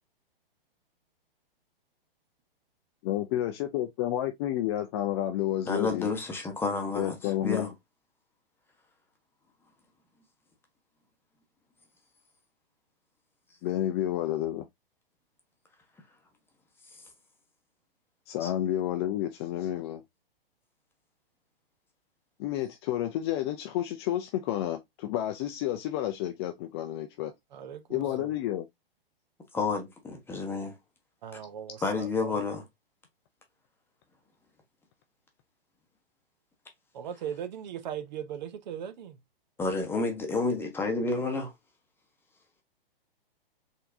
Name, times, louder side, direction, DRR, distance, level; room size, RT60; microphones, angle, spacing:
voice 1, 3.0-6.1 7.0-7.6 13.6-14.7 18.3-20.0 22.4-27.3 27.9-28.7, left 12 dB, 25° left, 0.5 m, -30 dB
voice 2, 5.7-7.7 18.4-18.5 29.5-30.8 31.8-32.7 39.6-41.5, left 3 dB, 10° left, 1.1 m, -30 dB
voice 3, 27.5-28.3 31.2-32.4 36.9-39.2, right 9 dB, 50° right, 0.8 m, -39 dB
4.4 x 3.6 x 2.6 m
figure-of-eight pair, 115°, 29 cm